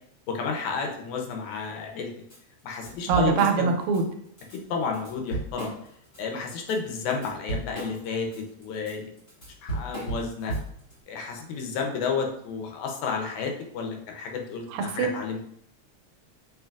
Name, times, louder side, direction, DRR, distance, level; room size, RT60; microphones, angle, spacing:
voice 1, 0.3-2.1 2.6-3.7 4.5-5.7 6.2-9.1 9.6-10.6 11.1-15.4, left 5 dB, 80° left, 2 dB, 2.0 m, -31 dB
Drum kit / Drum, 2.3-2.4 2.7-4.0 4.4-4.6 4.9-6.2 6.6-10.9, right 2 dB, 30° left, 1.4 m, -34 dB
voice 2, 3.1-4.1 14.7-15.1, right 5 dB, 85° right, 5 dB, 1.9 m, -23 dB
5.6 x 3.6 x 2.4 m, 0.68 s
omnidirectional pair, 3.4 m